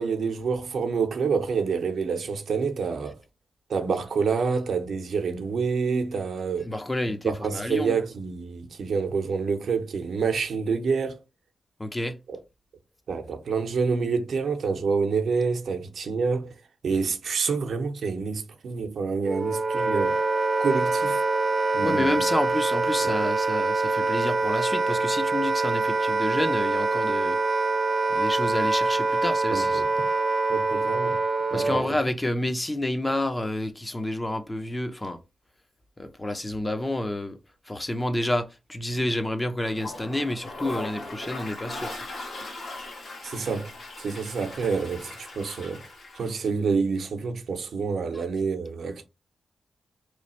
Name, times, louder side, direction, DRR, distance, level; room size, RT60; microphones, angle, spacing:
voice 1, 0.0-3.2 3.7-6.7 7.2-11.2 12.3-12.4 13.1-16.5 16.8-20.2 20.6-21.2 21.7-22.1 23.0-23.1 29.5-29.9 30.5-31.2 31.5-31.8 43.2-43.7 44.0-45.8 46.1-49.0, right 5 dB, 80° right, 0.7 m, -27 dB
voice 2, 6.6-8.0 11.8-12.2 21.8-27.4 28.1-29.8 31.5-35.2 36.0-37.4 37.7-41.9, left 1 dB, 20° left, 0.6 m, -29 dB
Wind instrument woodwind instrument, 19.2-31.9, right 3 dB, 35° right, 0.4 m, -25 dB
Toilet flush, 39.6-46.4, left 2 dB, 65° left, 1.5 m, -39 dB
3.1 x 2.4 x 4.2 m
cardioid pair, 80°, 0 cm